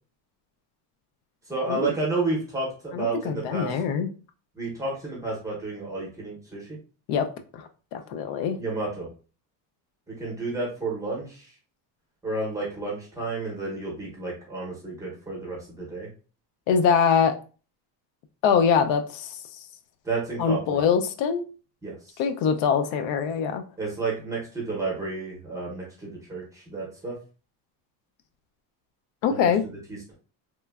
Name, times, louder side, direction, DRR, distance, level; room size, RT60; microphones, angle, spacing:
voice 1, 1.5-3.8 4.5-6.8 8.6-9.1 10.1-11.5 12.2-16.1 20.0-20.8 21.8-22.2 23.8-27.2 29.3-29.5 29.9-30.1, right 3 dB, 10° right, -4 dB, 0.6 m, -31 dB
voice 2, 2.9-4.1 7.1-7.3 7.5-8.6 16.7-17.3 18.4-19.6 20.4-21.4 22.2-23.6 29.2-29.7, left 7 dB, 80° left, 7 dB, 0.5 m, -23 dB
3.1 x 2.1 x 2.2 m, 0.36 s
cardioid pair, 175°, 43 cm